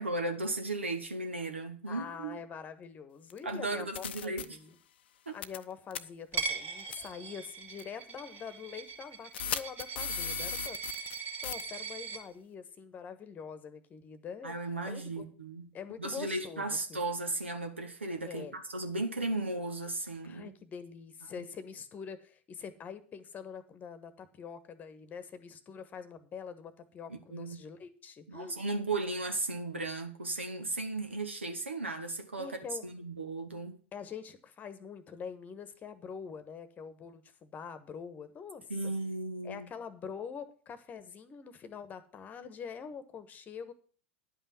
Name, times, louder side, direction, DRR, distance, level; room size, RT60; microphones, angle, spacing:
voice 1, 0.0-2.4 3.4-4.4 5.3-5.4 14.4-15.7 16.0-20.5 27.1-27.6 28.3-33.8 38.7-39.7, right 2 dB, 80° right, 1.5 m, -35 dB
voice 2, 1.9-4.7 5.3-10.8 11.4-14.5 14.9-15.2 15.7-17.0 18.2-18.6 20.2-28.6 32.4-32.9 33.9-38.6 39.4-43.7, left 6 dB, 25° left, 1.2 m, -45 dB
sound 1, 3.3-3.4 3.9-4.4 5.4-5.6 5.9-6.0 6.9-7.1 7.8-7.9 9.3-11.2 11.4-11.6, left 8 dB, 65° left, 0.6 m, -36 dB
Coin (dropping), 6.3-12.2, right 5 dB, 30° right, 2.3 m, -40 dB
10.5 x 5.6 x 7.5 m
figure-of-eight pair, 85°, 6 cm